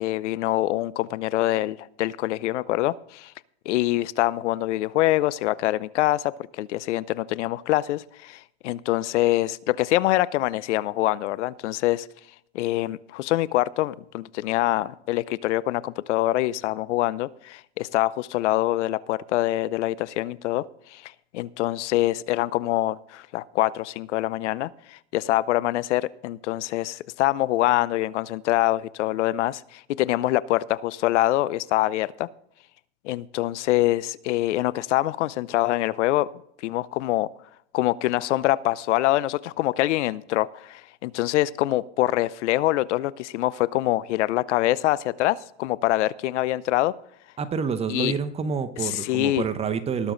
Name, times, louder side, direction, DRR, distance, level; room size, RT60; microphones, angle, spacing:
voice 1, 0.0-3.3 3.7-12.1 12.5-20.6 20.9-32.3 33.0-36.3 36.6-37.3 37.7-46.9 47.9-48.1 48.8-49.4, left 16 dB, 80° left, 20 dB, 0.6 m, -25 dB
voice 2, 47.4-50.1, right 6 dB, 15° right, 11 dB, 0.8 m, -28 dB
20.0 x 6.9 x 3.8 m, 0.71 s
supercardioid pair, 140°, 35 cm